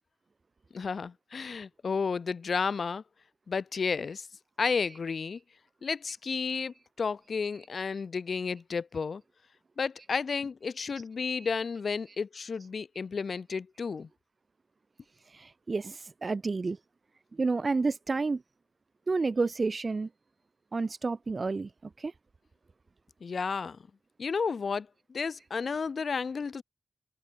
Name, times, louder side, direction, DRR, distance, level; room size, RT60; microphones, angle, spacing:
voice 1, 0.7-3.0 3.5-4.3 4.6-5.4 5.8-9.2 9.8-14.1 23.2-23.8 24.2-26.6, left 5 dB, 55° left, 4.6 m, -32 dB
voice 2, 15.3-16.8 17.3-18.4 19.1-20.1 20.7-21.7 22.0-22.1, right 3 dB, 35° right, 3.0 m, -30 dB
open air
wide cardioid pair, 170°, 0 cm